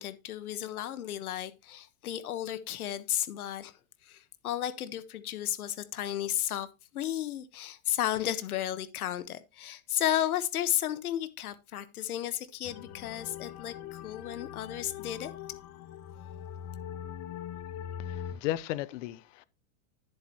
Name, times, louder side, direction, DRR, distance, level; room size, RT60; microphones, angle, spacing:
voice 1, 0.0-6.7 6.9-15.3, left 12 dB, 85° left, 1.4 m, -33 dB
sound 1, 12.6-18.3, left 9 dB, 35° left, 1.3 m, -42 dB
voice 2, 18.0-19.4, left 14 dB, 60° left, 0.9 m, -35 dB
10.5 x 7.8 x 3.0 m
supercardioid pair, 135°, 42 cm